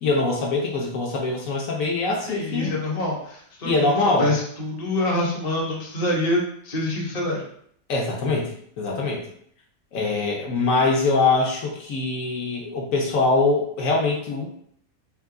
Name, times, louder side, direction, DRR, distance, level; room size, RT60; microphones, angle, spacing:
voice 1, 0.0-2.7 3.6-4.3 7.9-9.2 9.9-14.5, left 3 dB, 70° left, -2 dB, 1.1 m, -23 dB
voice 2, 2.2-7.4, left 1 dB, 35° left, -2 dB, 0.7 m, -26 dB
3.6 x 2.3 x 3.6 m, 0.65 s
omnidirectional pair, 1.5 m